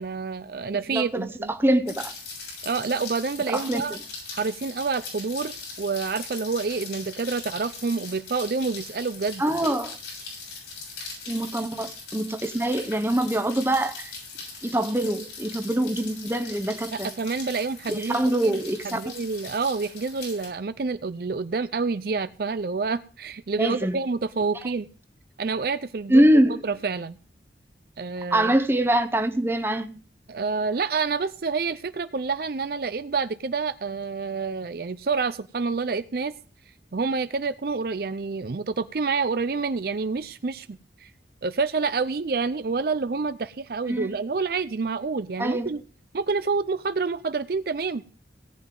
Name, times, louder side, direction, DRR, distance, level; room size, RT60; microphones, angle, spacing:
voice 1, 0.0-1.5 2.6-4.0 4.3-9.8 16.9-24.9 25.4-26.3 26.6-27.2 28.0-28.5 30.3-36.3 36.9-41.1 41.4-45.8 46.1-48.0, right 4 dB, 55° right, 0.5 m, -28 dB
voice 2, 0.7-2.1 3.5-4.0 9.4-10.0 11.3-14.1 14.6-17.1 17.9-19.1 23.6-24.0 26.1-26.6 28.3-29.9 43.9-44.2 45.4-45.7, right 1 dB, 10° right, 0.8 m, -24 dB
Rain, 1.9-20.5, left 4 dB, 80° left, 7.1 m, -40 dB
17.5 x 9.2 x 3.8 m
head